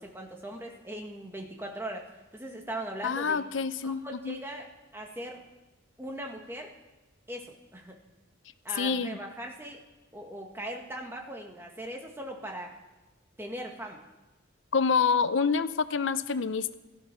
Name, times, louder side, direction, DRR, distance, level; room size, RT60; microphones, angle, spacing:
voice 1, 0.0-2.0 2.3-3.4 3.8-4.7 4.9-5.4 6.0-6.7 7.3-8.0 8.6-9.8 10.1-12.8 13.4-14.0, right 1 dB, 10° right, 1 dB, 1.8 m, -39 dB
voice 2, 3.0-4.4 8.8-9.2 14.7-16.7, left 5 dB, 80° left, 13 dB, 0.6 m, -27 dB
16.5 x 13.0 x 6.2 m, 1.1 s
head